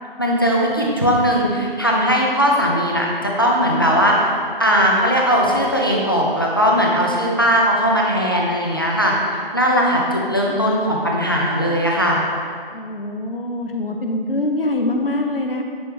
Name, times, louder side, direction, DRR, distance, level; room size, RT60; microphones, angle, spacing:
voice 1, 0.2-4.3 4.6-12.3, equal, 25° left, -2 dB, 0.6 m, -18 dB
voice 2, 9.7-10.7 12.7-15.6, left 1 dB, 70° left, 2 dB, 1.0 m, -25 dB
9.3 x 3.2 x 4.8 m, 2.1 s
figure-of-eight pair, 165°, 29 cm